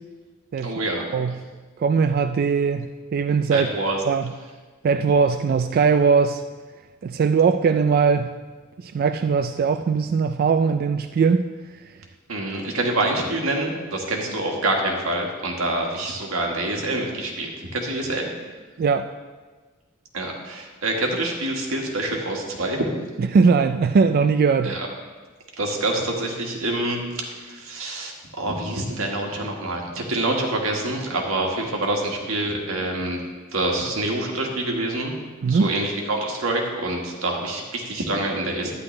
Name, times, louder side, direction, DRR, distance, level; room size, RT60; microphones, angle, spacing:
voice 1, 0.6-1.0 3.5-4.0 12.3-18.3 20.1-22.9 24.6-24.9 25.6-33.2 33.5-35.1 35.5-38.7, right 2 dB, 90° right, 0 dB, 1.7 m, -26 dB
voice 2, 1.8-3.7 4.1-4.3 4.8-6.4 7.0-8.3 8.8-11.5 18.8-19.1 23.2-24.8 35.4-35.7, right 5 dB, 45° right, 8 dB, 0.3 m, -20 dB
11.5 x 9.8 x 3.2 m, 1.4 s
head